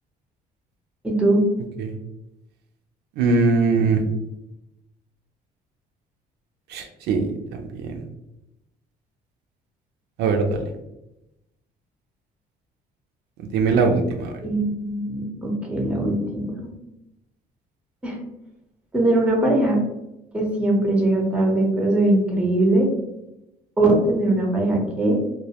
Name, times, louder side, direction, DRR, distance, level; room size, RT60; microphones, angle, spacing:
voice 1, 1.0-1.4 14.4-16.7 18.0-18.2 18.9-19.8 20.3-22.9 23.8-25.2, right 1 dB, 5° right, -1 dB, 0.6 m, -21 dB
voice 2, 3.2-4.0 6.7-7.3 7.8-7.9 10.2-10.6 13.5-14.3, right 4 dB, 80° right, 3 dB, 0.4 m, -20 dB
2.2 x 2.0 x 2.8 m, 0.91 s
cardioid pair, 110°, 17 cm